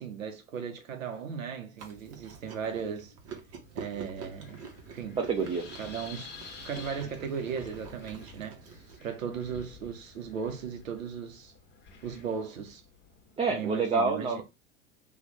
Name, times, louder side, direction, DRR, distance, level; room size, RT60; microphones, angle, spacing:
voice 1, 0.0-3.1 3.7-4.6 4.9-5.2 5.8-6.3 6.6-8.6 9.0-11.5 12.0-12.8 13.5-14.4, right 7 dB, 90° right, 0.9 m, -37 dB
Chewing mastication, 1.8-9.0, right 5 dB, 40° right, 1.1 m, -47 dB
Wind, 3.3-13.4, left 4 dB, 25° left, 1.0 m, -50 dB
voice 2, 5.2-5.6 13.4-14.4, right 4 dB, 15° right, 0.5 m, -27 dB
3.0 x 2.5 x 4.0 m
hypercardioid pair, 90°, 39 cm